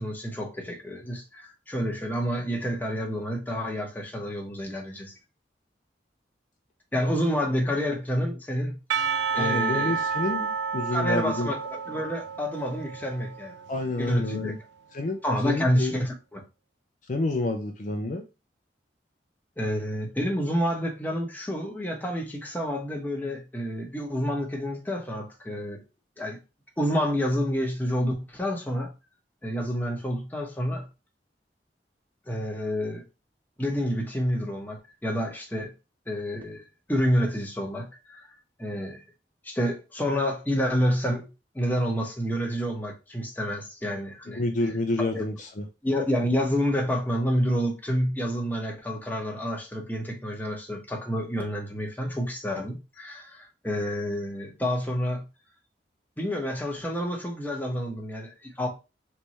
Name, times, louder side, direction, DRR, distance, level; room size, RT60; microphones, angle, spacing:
voice 1, 0.0-5.1 6.9-10.0 10.9-13.6 14.0-14.5 15.2-16.4 19.6-25.8 26.2-26.4 26.8-28.9 29.4-30.8 32.3-33.0 33.6-35.7 36.1-38.2 38.6-39.0 39.4-41.3 41.5-44.4 45.1-45.2 45.8-55.2 56.2-58.7, equal, 10° left, 1.0 m, -29 dB
Percussion / Church bell, 8.9-14.1, right 6 dB, 70° right, 0.3 m, -30 dB
voice 2, 9.4-11.5 13.7-14.6 14.9-15.2 15.4-15.9 17.1-18.2 44.3-45.6, left 2 dB, 45° left, 0.5 m, -29 dB
3.4 x 3.2 x 4.1 m
head